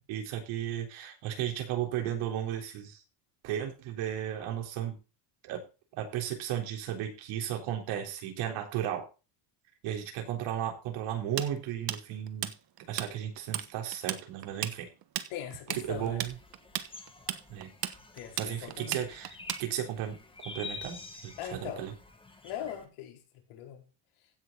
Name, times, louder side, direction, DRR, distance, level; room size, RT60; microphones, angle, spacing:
voice 1, 0.0-3.0 3.4-5.0 5.4-5.6 6.0-9.0 9.8-12.5 12.9-14.9 15.7-16.3 17.5-17.7 18.4-20.2 20.4-21.9, right 10 dB, 75° right, 3.8 m, -35 dB
Tools, 11.4-13.1 13.4-13.7 13.9-20.0, right 12 dB, 45° right, 1.2 m, -35 dB
voice 2, 15.3-16.2 18.1-19.2 21.4-21.9 22.4-23.2 23.5-23.8, left 10 dB, 75° left, 4.2 m, -40 dB
sound 1, 15.7-22.9, left 3 dB, 10° left, 1.9 m, -48 dB
16.0 x 6.7 x 4.0 m
cardioid pair, 170°, 50 cm